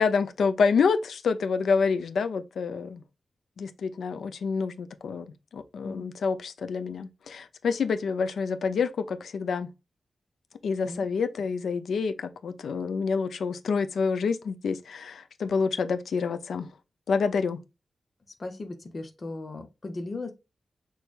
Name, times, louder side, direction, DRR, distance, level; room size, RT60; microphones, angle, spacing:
voice 1, 0.0-3.0 3.6-9.7 10.6-16.7 17.1-17.6, left 5 dB, 80° left, 0.6 m, -27 dB
voice 2, 18.4-20.3, left 2 dB, 30° left, 0.9 m, -37 dB
6.2 x 3.3 x 2.5 m
wide cardioid pair, 175°, 0 cm